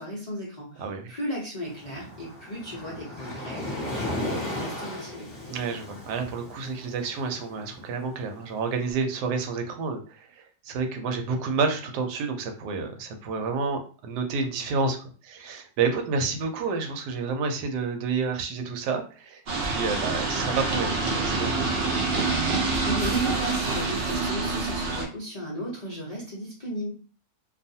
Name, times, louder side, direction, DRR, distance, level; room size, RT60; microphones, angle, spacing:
voice 1, 0.0-5.3 22.8-26.9, equal, 60° left, -6 dB, 0.4 m, -35 dB
voice 2, 0.8-1.1 5.5-15.0 15.2-21.6, right 4 dB, 90° right, 5 dB, 1.2 m, -29 dB
Waves surf, 1.7-8.8, left 1 dB, 20° left, 0.9 m, -36 dB
sound 1, 19.5-25.0, right 3 dB, 75° right, 0.5 m, -26 dB
2.5 x 2.4 x 2.7 m, 0.39 s
omnidirectional pair, 1.7 m